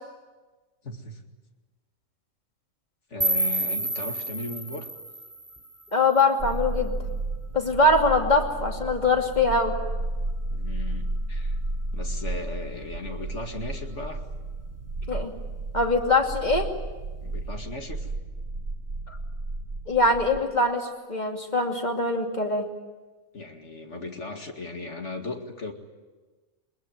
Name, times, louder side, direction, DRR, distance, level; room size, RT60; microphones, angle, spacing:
voice 1, 0.8-1.2 3.1-4.9 10.5-11.6 11.9-14.2 17.2-18.1 23.3-25.7, left 2 dB, 50° left, 3 dB, 2.5 m, -37 dB
sound 1, 3.2-6.2, right 1 dB, 10° right, 2.9 m, -29 dB
voice 2, 5.9-6.9 7.5-9.7 15.1-15.3 15.7-16.7 19.1-19.2 19.9-22.7, left 2 dB, 30° left, 2 dB, 2.8 m, -23 dB
sound 2, 6.4-20.4, right 2 dB, 55° right, 1.7 m, -32 dB
22.5 x 21.0 x 9.3 m, 1.3 s
omnidirectional pair, 1.5 m